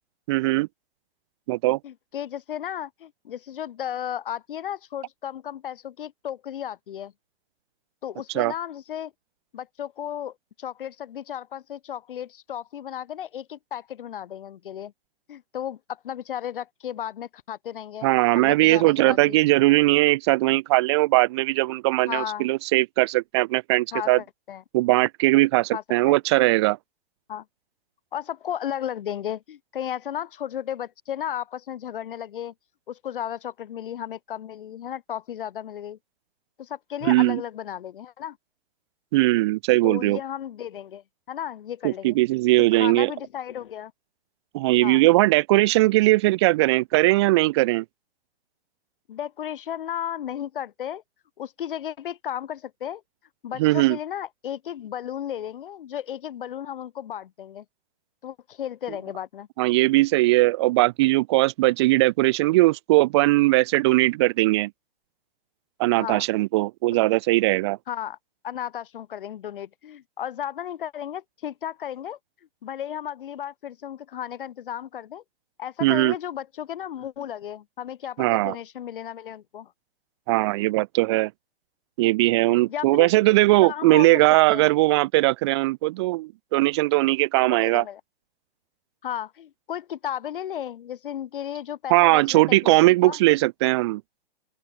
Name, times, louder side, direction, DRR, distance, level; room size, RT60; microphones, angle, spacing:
voice 1, 0.3-0.7 1.5-1.8 8.3-8.5 18.0-24.2 24.7-26.8 37.1-37.4 39.1-40.2 41.8-43.1 44.5-47.8 53.6-54.0 59.6-64.7 65.8-67.8 75.8-76.1 78.2-78.5 80.3-81.3 82.0-87.8 91.9-94.0, right 20 dB, 25° right, 0.9 m, -20 dB
voice 2, 1.8-7.1 8.0-9.1 9.5-14.9 15.3-19.4 22.1-22.5 23.9-24.6 25.7-26.2 27.3-27.5 28.1-32.5 32.9-36.0 36.6-38.4 39.8-42.2 42.7-43.9 44.8-45.0 49.1-51.0 51.4-53.0 53.4-57.7 58.2-59.5 66.0-66.3 67.9-68.2 68.4-72.2 72.6-75.2 75.6-79.7 82.5-83.1 83.6-84.7 87.4-88.0 89.0-93.2, left 10 dB, 60° left, 6.9 m, -34 dB
open air
hypercardioid pair, 165°, 30 cm